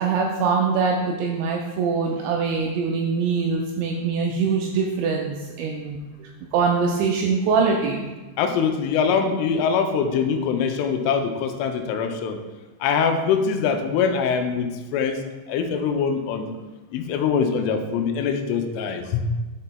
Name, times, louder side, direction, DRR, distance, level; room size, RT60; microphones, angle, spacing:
voice 1, 0.0-8.0, right 5 dB, 85° right, 1 dB, 2.6 m, -23 dB
voice 2, 8.4-12.4 12.8-15.2 15.5-16.5 16.9-19.4, left 6 dB, 85° left, 6 dB, 3.0 m, -23 dB
12.0 x 5.4 x 2.2 m, 1.2 s
omnidirectional pair, 5.6 m